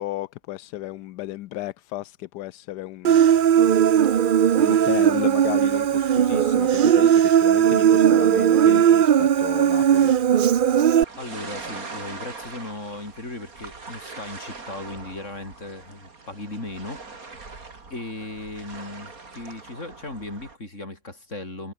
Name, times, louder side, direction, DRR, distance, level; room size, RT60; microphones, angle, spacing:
voice 1, 0.0-3.2 3.5-3.6 4.6-10.1, left 15 dB, 85° left, 1.2 m, -34 dB
Human voice, 3.0-11.0, right 9 dB, 75° right, 0.4 m, -18 dB
sound 1, 11.0-20.6, right 4 dB, 60° right, 3.7 m, -41 dB
voice 2, 11.2-17.3 17.9-21.7, left 2 dB, 45° left, 5.8 m, -37 dB
omnidirectional pair, 1.7 m